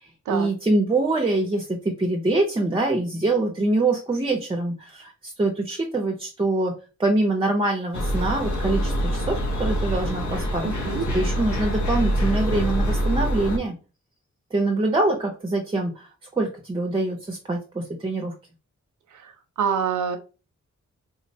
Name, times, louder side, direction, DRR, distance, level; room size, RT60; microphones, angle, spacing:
voice 1, 0.0-6.7 7.0-10.7 11.1-13.8 14.5-16.1 16.4-18.3, right 2 dB, 20° right, 2 dB, 0.4 m, -24 dB
sound 1, 7.9-13.6, equal, 85° left, 0.7 m, -25 dB
voice 2, 10.6-11.1 19.1-19.3 19.6-20.2, right 7 dB, 80° right, 6 dB, 0.5 m, -26 dB
3.6 x 2.1 x 2.6 m, 0.33 s
wide cardioid pair, 160°, 29 cm